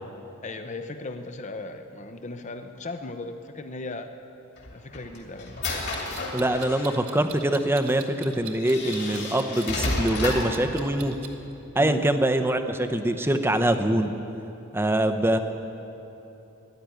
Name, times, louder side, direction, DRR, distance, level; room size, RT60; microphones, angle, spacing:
voice 1, 0.4-4.1 4.7-5.7 11.8-12.0, left 2 dB, 35° left, 8 dB, 0.6 m, -37 dB
sound 1, 4.6-7.0 7.9-8.0 8.6-10.6, left 2 dB, 50° left, 2.5 m, -31 dB
Clock, 5.7-11.3, right 8 dB, 75° right, 1.3 m, -44 dB
voice 2, 6.3-11.2 11.8-14.1 14.7-15.4, right 1 dB, 10° right, 8 dB, 0.6 m, -24 dB
13.5 x 11.0 x 9.1 m, 3.0 s
head